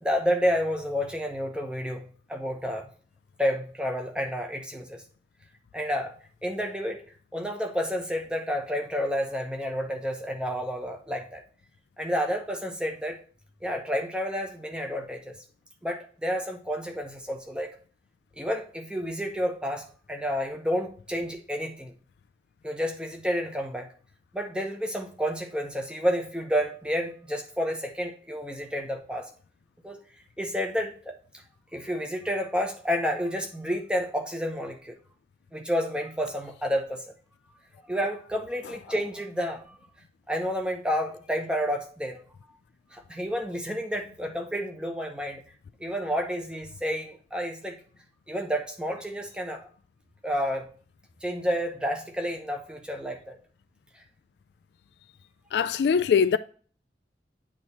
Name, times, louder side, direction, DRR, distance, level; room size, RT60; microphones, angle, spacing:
voice 1, 0.0-2.9 3.4-5.0 5.7-6.1 6.4-7.0 7.3-11.4 12.0-13.2 13.6-15.4 15.8-17.8 18.4-22.0 22.6-23.9 24.3-29.3 29.8-30.0 30.4-31.1 31.7-35.0 35.5-37.0 37.9-39.8 40.3-42.2 42.9-45.4 45.8-47.8 48.3-49.7 50.2-50.7 51.2-53.4, equal, 5° right, 0.8 m, -30 dB
voice 2, 55.5-56.4, left 6 dB, 70° left, 0.3 m, -22 dB
8.6 x 3.0 x 4.2 m
head